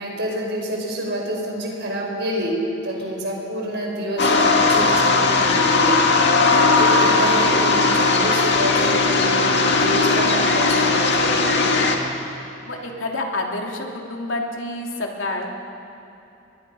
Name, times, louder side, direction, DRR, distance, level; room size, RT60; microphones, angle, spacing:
voice 1, 0.0-11.5, right 1 dB, 60° right, 0 dB, 5.3 m, -28 dB
voice 2, 2.9-3.3 6.9-7.1 12.7-15.5, left 2 dB, 80° left, 0 dB, 3.0 m, -29 dB
sound 1, 4.2-12.0, left 3 dB, 60° left, 2.1 m, -18 dB
30.0 x 22.5 x 5.6 m, 2.9 s
head